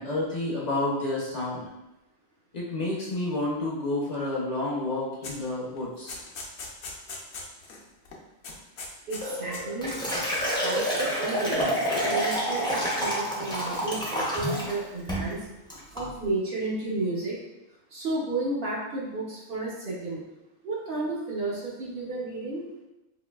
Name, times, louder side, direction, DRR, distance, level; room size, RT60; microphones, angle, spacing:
voice 1, 0.0-1.6 2.5-6.2, left 2 dB, 45° left, -4 dB, 0.6 m, -30 dB
sound 1, 5.2-5.5 5.8-8.2 8.4-9.2 9.5-10.6, left 3 dB, 70° left, 0.9 m, -40 dB
voice 2, 9.1-10.0 10.5-11.6 12.0-15.5 15.9-17.4 17.9-20.2 20.6-22.6, right 2 dB, 55° right, -5 dB, 0.9 m, -32 dB
Liquid, 9.2-14.8 15.1-15.3 15.7-16.1, equal, 5° left, 0.5 m, -28 dB
3.8 x 2.5 x 2.2 m, 0.95 s
omnidirectional pair, 1.2 m